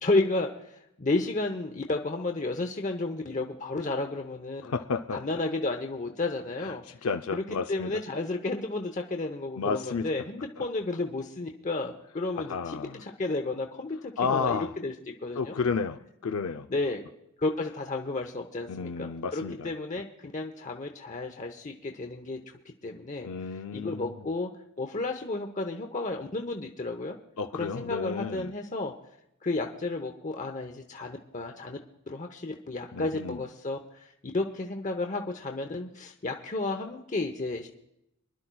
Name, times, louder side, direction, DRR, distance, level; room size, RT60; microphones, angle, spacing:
voice 1, 0.0-4.7 5.1-6.8 7.3-7.4 7.7-14.9 15.2-15.5 16.7-17.0 17.4-22.4 22.8-23.3 23.7-24.5 24.8-27.2 27.6-28.9 29.4-31.8 32.1-34.1 34.3-37.7, left 2 dB, 35° left, 3 dB, 0.8 m, -32 dB
voice 2, 4.6-5.2 6.6-6.7 7.0-8.0 9.6-10.0 10.6-10.7 12.4-12.9 14.2-14.7 15.4-16.7 18.7-19.7 23.2-24.2 27.4-28.5 32.9-33.4, left 5 dB, 90° left, 6 dB, 0.5 m, -31 dB
25.0 x 11.5 x 2.3 m, 0.80 s
head